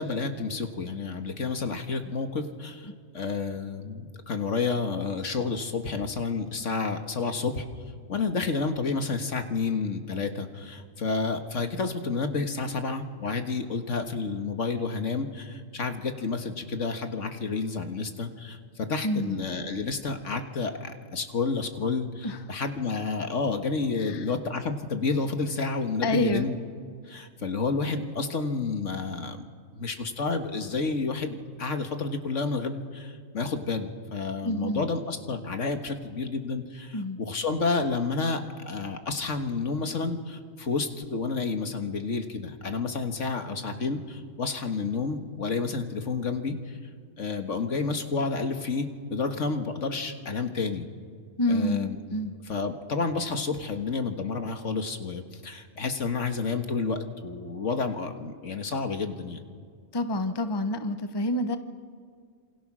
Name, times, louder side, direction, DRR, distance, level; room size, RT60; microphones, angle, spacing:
voice 1, 0.0-7.7 8.1-26.6 27.1-29.4 29.7-38.4 38.7-46.8 47.2-50.9 51.5-52.0 52.5-59.4, left 4 dB, 60° left, 7 dB, 1.9 m, -30 dB
voice 2, 19.0-19.4 22.2-22.4 24.0-24.2 26.0-26.5 34.4-34.8 36.9-37.2 51.4-52.3 59.9-61.6, left 1 dB, 20° left, 9 dB, 1.0 m, -28 dB
27.5 x 26.5 x 6.3 m, 2.1 s
omnidirectional pair, 1.4 m